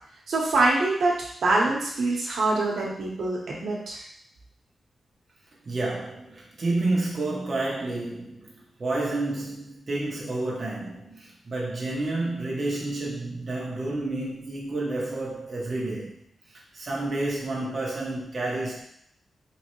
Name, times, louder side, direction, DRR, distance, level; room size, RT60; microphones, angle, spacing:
voice 1, 0.3-4.0, right 2 dB, 80° right, -3 dB, 0.9 m, -24 dB
voice 2, 5.7-16.2 16.7-18.8, right 2 dB, 35° right, -4 dB, 0.8 m, -30 dB
3.4 x 3.1 x 3.0 m, 0.67 s
wide cardioid pair, 175°, 0 cm